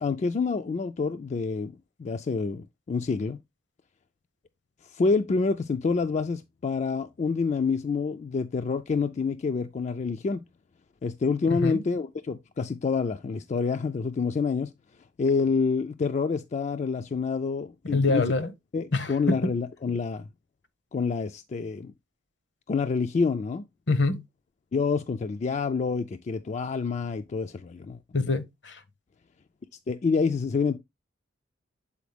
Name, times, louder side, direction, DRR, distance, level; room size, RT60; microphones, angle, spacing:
voice 1, 0.0-3.4 4.9-10.4 11.0-14.7 15.2-18.2 18.7-20.3 20.9-21.9 22.7-23.7 24.7-28.0 29.9-30.8, left 4 dB, 40° left, 0.3 m, -27 dB
voice 2, 11.5-11.8 17.9-18.5 18.9-19.4 23.9-24.2 28.1-28.8, left 3 dB, 65° left, 0.8 m, -25 dB
7.1 x 4.3 x 3.3 m
head